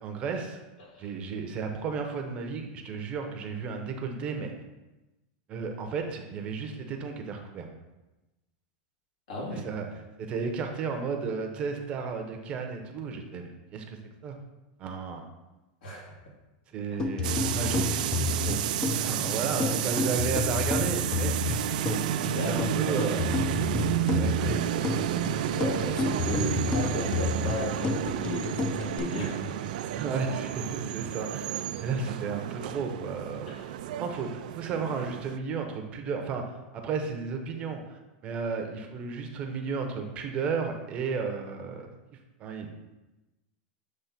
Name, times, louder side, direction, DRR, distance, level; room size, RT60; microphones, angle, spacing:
voice 1, 0.0-0.6 1.0-4.5 5.5-7.7 9.5-9.9 10.2-14.0 14.2-14.3 14.8-15.3 16.7-18.6 19.0-21.3 21.7-22.0 22.3-23.2 24.1-25.0 29.9-31.5 31.8-33.6 34.0-41.9 42.4-42.7, right 5 dB, 25° right, 4 dB, 0.7 m, -33 dB
voice 2, 0.8-1.1 9.3-9.7 15.8-16.2 19.6-19.7 22.3-23.3 25.5-29.9 33.5-33.7, left 1 dB, 85° left, -3 dB, 2.4 m, -35 dB
sound 1, 17.0-29.0, left 4 dB, 20° left, 0.4 m, -31 dB
sound 2, 17.2-35.4, right 12 dB, 65° right, 0.3 m, -31 dB
7.3 x 3.1 x 5.8 m, 1.0 s
supercardioid pair, 170°, 5 cm